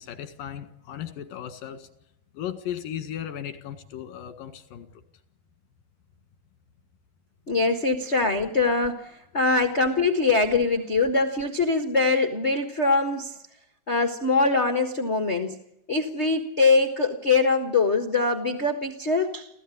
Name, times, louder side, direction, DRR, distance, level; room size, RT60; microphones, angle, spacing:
voice 1, 0.0-1.9 2.3-5.0, left 10 dB, 80° left, 9 dB, 3.4 m, -36 dB
voice 2, 7.5-13.4 13.9-15.6 15.9-19.5, left 3 dB, 55° left, 6 dB, 0.7 m, -23 dB
29.0 x 14.5 x 9.8 m, 0.84 s
omnidirectional pair, 3.9 m